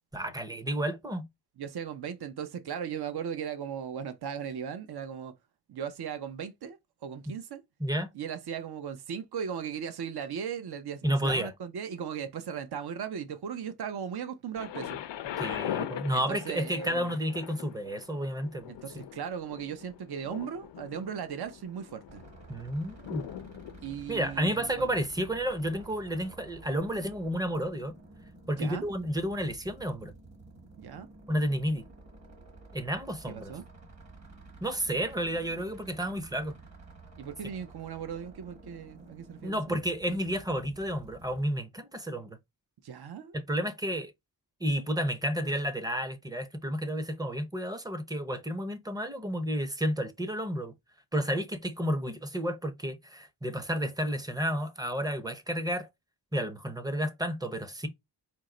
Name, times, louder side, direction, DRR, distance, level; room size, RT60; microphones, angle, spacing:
voice 1, 0.1-1.2 7.3-7.4 7.8-8.1 11.0-11.5 15.4-19.0 22.5-23.2 24.1-27.9 28.5-30.1 31.3-31.8 32.7-33.5 34.6-36.6 39.4-42.4 43.3-44.1 44.6-50.7 51.1-55.9 56.3-57.9, equal, 10° right, 0.6 m, -31 dB
voice 2, 1.6-5.3 5.7-7.6 8.1-15.0 16.1-17.2 18.8-22.2 23.8-24.9 28.6-28.9 30.8-31.1 33.3-33.6 37.2-39.6 42.8-43.3, right 8 dB, 60° right, 0.7 m, -37 dB
Thunder, 14.6-26.4 27.2-27.3, left 11 dB, 75° left, 0.6 m, -42 dB
sound 1, 22.1-41.5, right 2 dB, 40° right, 1.4 m, -51 dB
4.5 x 2.1 x 3.7 m
wide cardioid pair, 90°, 43 cm